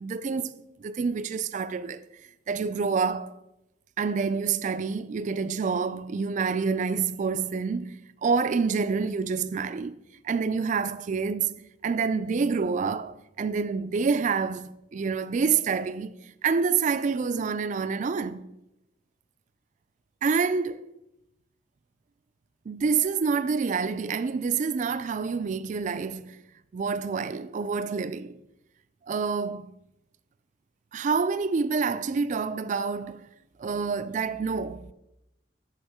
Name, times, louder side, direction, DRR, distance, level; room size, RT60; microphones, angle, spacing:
voice 1, 0.0-2.1 2.5-3.3 4.0-9.9 10.2-18.5 20.2-20.9 22.7-26.4 26.7-28.4 29.1-29.7 30.9-33.2 33.6-34.9, right 5 dB, 40° right, 0.3 m, -27 dB
6.3 x 6.0 x 4.8 m
head